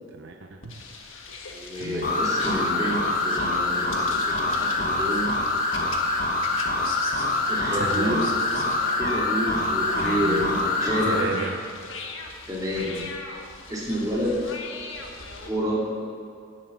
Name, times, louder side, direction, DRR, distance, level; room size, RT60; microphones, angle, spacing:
voice 1, 0.1-0.7 1.8-2.1 7.7-8.3 10.0-10.5 10.9-11.6 12.8-13.2, right 4 dB, 60° right, 4 dB, 0.7 m, -33 dB
sound 1, 0.6-15.5, left 3 dB, 65° left, 1.5 m, -39 dB
voice 2, 1.5-5.3 7.5-8.3 8.9-11.2 12.5-12.9 13.7-14.5 15.4-15.8, equal, 15° right, -5 dB, 2.8 m, -28 dB
sound 2, 2.0-11.3, left 2 dB, 45° left, 1.4 m, -25 dB
13.0 x 7.4 x 8.5 m, 2.4 s
head